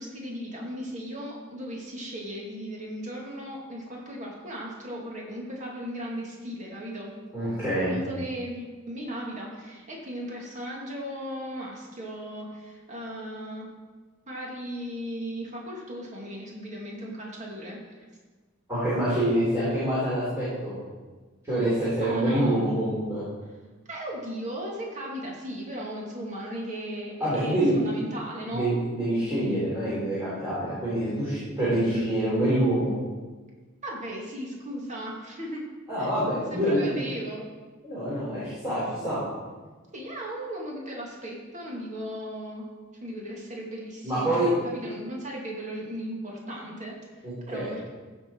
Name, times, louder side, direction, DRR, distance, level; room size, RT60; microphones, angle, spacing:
voice 1, 0.0-7.1 7.9-13.7 14.3-18.0 19.1-19.2 22.0-22.6 23.9-28.7 31.9-32.1 33.8-35.7 36.0-37.4 39.9-42.7 43.0-47.9, equal, 35° right, -2 dB, 2.2 m, -36 dB
voice 2, 7.3-7.9 18.7-20.7 21.4-23.2 27.2-27.8 28.5-32.9 35.9-36.9 37.8-39.2 44.0-44.5 47.2-47.7, right 1 dB, 15° right, -11 dB, 4.0 m, -26 dB
15.0 x 6.4 x 4.6 m, 1.3 s
head